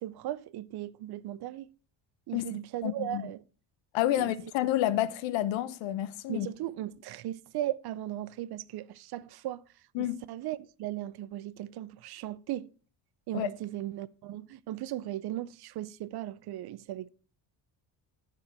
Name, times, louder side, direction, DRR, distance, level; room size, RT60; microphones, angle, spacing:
voice 1, 0.0-1.7 2.3-3.4 4.2-4.3 6.3-9.6 10.0-12.7 13.3-17.1, right 13 dB, 60° right, 0.6 m, -37 dB
voice 2, 2.8-3.3 3.9-6.5 9.9-10.2 13.3-13.5, left 13 dB, 90° left, 0.9 m, -29 dB
13.0 x 4.6 x 6.0 m
cardioid pair, 125°, 43 cm